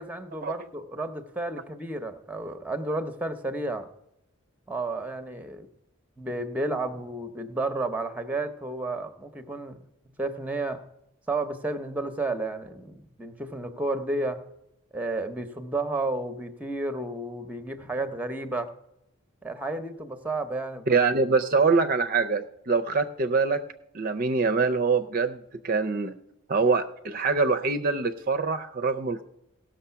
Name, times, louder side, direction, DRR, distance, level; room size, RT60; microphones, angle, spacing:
voice 1, 0.0-3.9 4.7-5.7 6.2-9.8 10.2-10.8 11.3-14.4 14.9-18.7 19.4-20.9, right 2 dB, 5° right, 9 dB, 0.7 m, -32 dB
voice 2, 20.9-23.6 23.9-26.1 26.5-29.2, right 4 dB, 45° right, 8 dB, 0.5 m, -24 dB
17.0 x 6.4 x 5.6 m, 0.84 s
head